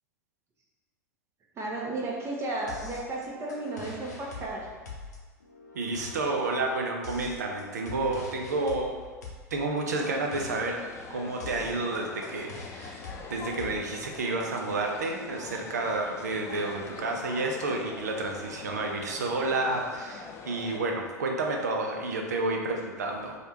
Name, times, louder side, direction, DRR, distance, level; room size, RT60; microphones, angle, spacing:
voice 1, 1.5-4.7 18.6-18.8, right 2 dB, 30° right, -3 dB, 1.0 m, -34 dB
sound 1, 2.7-14.4, left 3 dB, 80° left, 0.6 m, -45 dB
voice 2, 5.7-8.9 9.5-10.8 11.1-23.4, right 2 dB, 75° right, 2 dB, 0.5 m, -30 dB
sound 2, 9.9-20.8, left 5 dB, 30° left, 0.4 m, -43 dB
3.3 x 2.4 x 4.2 m, 1.4 s
figure-of-eight pair, 80°, 9 cm